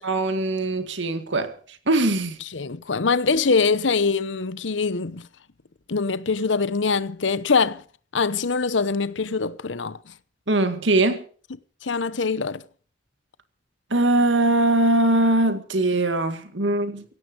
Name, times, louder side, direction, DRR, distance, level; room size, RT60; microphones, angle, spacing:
voice 1, 0.0-1.5 1.9-2.4 10.5-11.2 13.9-17.0, right 2 dB, 80° right, 2.1 m, -21 dB
voice 2, 2.5-5.3 5.9-7.8 8.1-10.0 11.8-12.6, left 4 dB, 85° left, 0.9 m, -23 dB
17.0 x 14.5 x 5.3 m
head